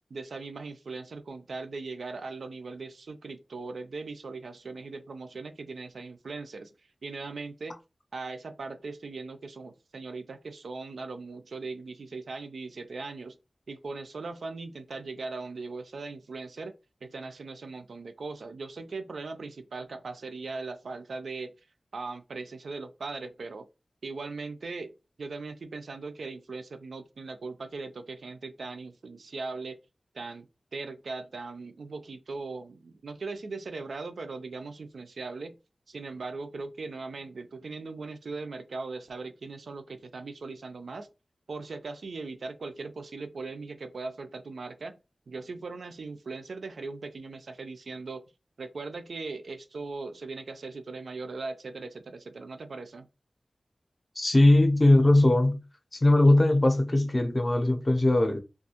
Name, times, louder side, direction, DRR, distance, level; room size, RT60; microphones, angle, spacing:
voice 1, 0.1-6.7 7.0-7.8 8.1-13.4 13.7-16.7 17.0-21.5 21.9-23.7 24.0-29.8 30.1-30.5 30.7-35.6 35.9-41.1 41.5-45.0 45.3-48.2 48.6-53.1, right 3 dB, 90° right, 0.4 m, -39 dB
voice 2, 54.2-55.6 55.9-58.4, left 1 dB, 35° left, 0.5 m, -20 dB
2.4 x 2.2 x 2.7 m
wide cardioid pair, 90°, 0 cm